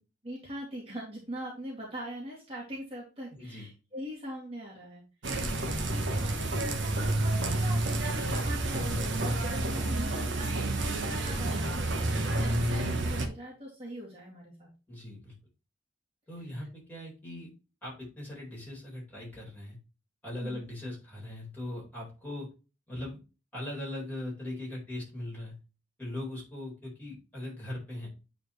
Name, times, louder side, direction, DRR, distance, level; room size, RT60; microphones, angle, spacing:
voice 1, 0.2-5.0 5.9-14.7 20.4-20.7, equal, 30° right, -4 dB, 2.4 m, -42 dB
voice 2, 3.3-3.7 5.3-5.9 14.9-15.3 16.3-17.5 17.8-19.8 20.2-22.5 22.9-23.2 23.5-25.6 26.0-28.1, left 1 dB, 10° left, -5 dB, 4.3 m, -40 dB
sound 1, 5.2-13.3, right 2 dB, 75° right, 1.2 m, -29 dB
9.1 x 4.4 x 3.2 m, 0.31 s
head